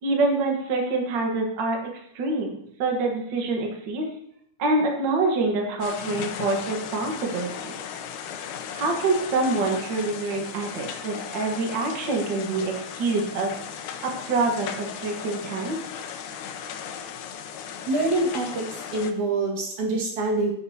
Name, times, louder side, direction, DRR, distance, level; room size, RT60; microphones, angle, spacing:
voice 1, 0.0-1.8 2.1-4.1 4.6-7.7 8.7-13.5 14.0-15.8, right 3 dB, 90° right, 1 dB, 1.0 m, -26 dB
sound 1, 5.8-19.1, left 8 dB, 75° left, 1.9 m, -36 dB
voice 2, 17.9-20.5, right 2 dB, 55° right, -2 dB, 3.0 m, -25 dB
16.0 x 6.9 x 2.8 m, 0.73 s
omnidirectional pair, 4.4 m